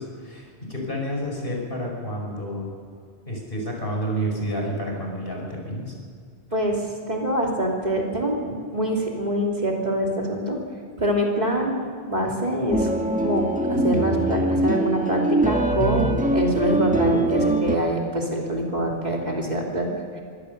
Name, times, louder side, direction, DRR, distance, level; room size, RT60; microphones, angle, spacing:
voice 1, 0.0-2.7 3.3-5.9 15.7-16.1, equal, 60° left, 0 dB, 5.5 m, -29 dB
voice 2, 6.5-10.6 11.0-11.8 12.1-12.9 13.2-13.4 13.7-20.2, equal, 40° right, -1 dB, 3.2 m, -25 dB
sound 1, 12.7-17.8, right 2 dB, 5° right, 1.4 m, -23 dB
23.5 x 17.0 x 6.8 m, 2.2 s
omnidirectional pair, 1.1 m